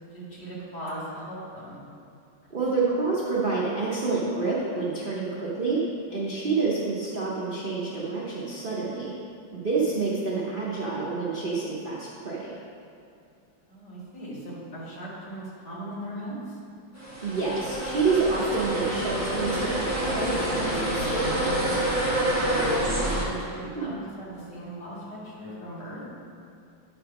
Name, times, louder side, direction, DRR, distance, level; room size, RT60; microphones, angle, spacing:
voice 1, 0.1-1.8 2.4-2.9 13.6-16.6 22.2-22.8 23.1-26.0, right 1 dB, 50° left, -7 dB, 2.7 m, -39 dB
voice 2, 2.5-5.8 6.1-9.1 9.5-12.5 17.2-21.3 23.6-23.9, right 4 dB, 50° right, -7 dB, 0.6 m, -28 dB
sound 1, 17.0-23.3, right 1 dB, 10° right, 0.9 m, -27 dB
9.6 x 3.5 x 5.8 m, 2.5 s
omnidirectional pair, 2.3 m